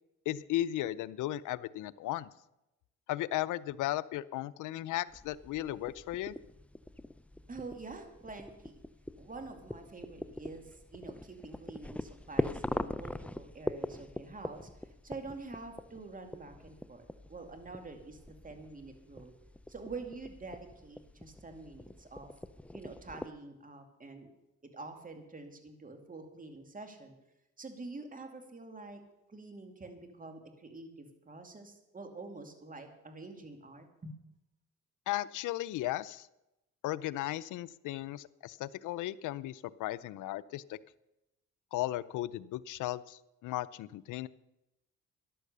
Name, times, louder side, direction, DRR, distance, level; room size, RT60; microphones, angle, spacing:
voice 1, 0.3-2.3 3.1-6.4 35.1-36.3 36.8-40.8 41.7-44.3, left 15 dB, 80° left, 16 dB, 0.6 m, -36 dB
sound 1, 5.1-23.3, left 1 dB, 5° left, 0.5 m, -42 dB
voice 2, 7.5-8.8 9.2-19.3 19.7-22.3 22.7-24.3 24.7-27.1 27.6-29.0 29.3-34.2, right 3 dB, 25° right, 5 dB, 2.5 m, -47 dB
13.5 x 11.0 x 6.7 m, 0.92 s
cardioid pair, 90°, 30 cm